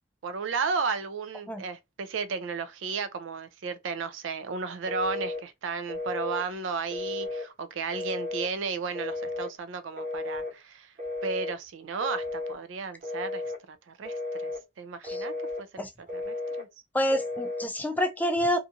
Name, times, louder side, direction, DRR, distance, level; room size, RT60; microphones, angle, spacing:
voice 1, 0.2-10.9 11.2-13.4 13.7-14.5 14.8-16.7, right 5 dB, 90° right, 0.4 m, -34 dB
Telephone, 4.9-5.4 5.9-6.5 6.9-7.5 7.9-8.5 8.9-9.5 10.0-10.5 11.0-11.6 12.0-12.6 13.0-13.6 14.0-14.6 15.0-15.6 16.1-16.7 17.1-17.7, left 2 dB, 45° right, 0.7 m, -34 dB
voice 2, 16.9-18.6, equal, 10° left, 0.4 m, -27 dB
2.6 x 2.4 x 2.6 m
head